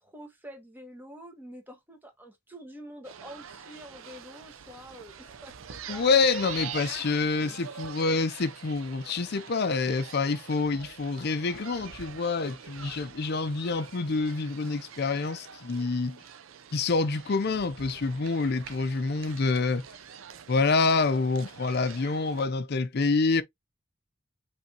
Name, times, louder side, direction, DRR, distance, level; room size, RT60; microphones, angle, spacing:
voice 1, 0.0-6.2 6.7-7.6, equal, 10° right, 1.4 m, -47 dB
sound 1, 3.0-22.4, right 8 dB, 70° right, 0.6 m, -45 dB
voice 2, 5.9-16.2 16.7-19.8 20.5-23.4, left 4 dB, 50° left, 0.5 m, -27 dB
5.5 x 3.4 x 2.8 m
head